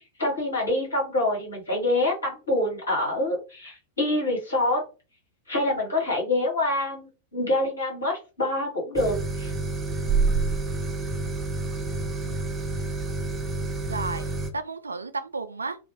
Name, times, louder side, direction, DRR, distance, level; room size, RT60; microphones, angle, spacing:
voice 1, 0.2-4.8 5.5-9.5, left 1 dB, 75° left, 1.5 m, -26 dB
sound 1, 9.0-14.5, right 3 dB, 20° right, 0.5 m, -28 dB
voice 2, 13.9-15.8, right 4 dB, 75° right, 0.3 m, -33 dB
2.7 x 2.1 x 2.8 m
figure-of-eight pair, 90°, 0 cm